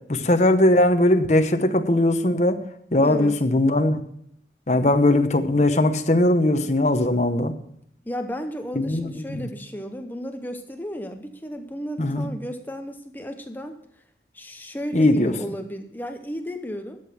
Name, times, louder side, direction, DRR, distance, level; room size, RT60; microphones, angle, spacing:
voice 1, 0.1-2.6 2.9-4.0 4.7-7.5 8.8-9.5 12.0-12.3 14.9-15.3, left 1 dB, 40° left, 7 dB, 0.9 m, -19 dB
voice 2, 3.0-3.4 8.0-13.8 14.3-17.0, equal, 10° left, 6 dB, 0.8 m, -33 dB
12.0 x 8.1 x 5.8 m, 0.69 s
head